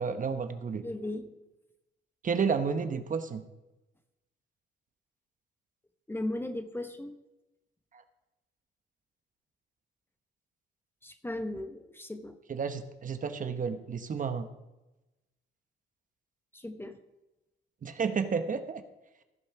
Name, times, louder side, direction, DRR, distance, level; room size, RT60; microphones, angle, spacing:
voice 1, 0.0-0.8 2.2-3.4 12.5-14.5 17.8-18.8, right 5 dB, 40° right, 9 dB, 1.0 m, -31 dB
voice 2, 0.8-1.3 6.1-7.1 11.0-12.4 16.5-17.0, left 1 dB, 10° left, 8 dB, 0.9 m, -37 dB
15.0 x 5.3 x 5.8 m, 1.0 s
cardioid pair, 90°, 20 cm